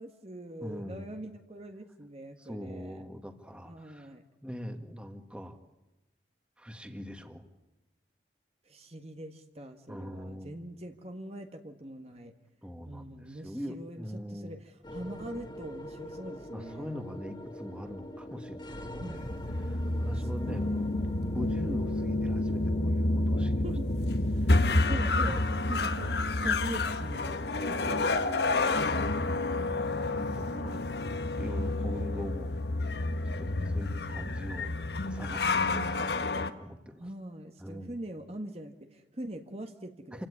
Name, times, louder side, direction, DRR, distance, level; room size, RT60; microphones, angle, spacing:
voice 1, 0.0-3.0 3.6-4.2 8.7-12.3 12.8-16.9 19.0-19.2 20.1-20.9 23.6-23.9 24.9-28.8 29.5-30.9 33.5-33.9 35.7-35.9 37.0-40.3, right 1 dB, 35° right, 6 dB, 1.5 m, -43 dB
voice 2, 0.6-1.1 2.4-4.1 4.4-5.6 6.6-7.4 9.9-10.5 12.6-14.6 16.5-23.6 24.4-24.6 24.9-25.5 27.7-28.3 29.2-29.4 29.7-30.8 31.4-32.6 33.2-34.7 35.0-36.1 36.6-37.1 37.6-37.9 40.1-40.3, equal, 5° right, 6 dB, 1.8 m, -42 dB
sound 1, 14.8-33.2, equal, 25° left, 2.1 m, -46 dB
sound 2, 19.2-36.5, left 2 dB, 70° left, 1.4 m, -29 dB
28.5 x 16.5 x 9.7 m, 0.99 s
head